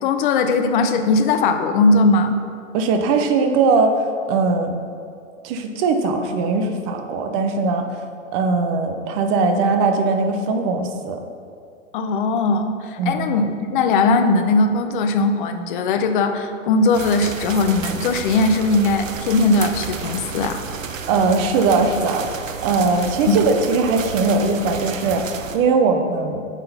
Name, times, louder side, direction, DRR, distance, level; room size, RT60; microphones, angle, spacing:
voice 1, 0.0-2.4 11.9-20.6 23.3-23.4, left 3 dB, 40° left, 7 dB, 0.6 m, -19 dB
voice 2, 2.7-4.8 5.4-7.9 8.3-11.2 13.0-13.2 21.1-26.4, right 4 dB, 25° right, 6 dB, 0.5 m, -20 dB
sound 1, 16.9-25.6, right 6 dB, 80° right, 0.6 m, -31 dB
8.1 x 3.8 x 4.1 m, 2.4 s
figure-of-eight pair, 105°, 39 cm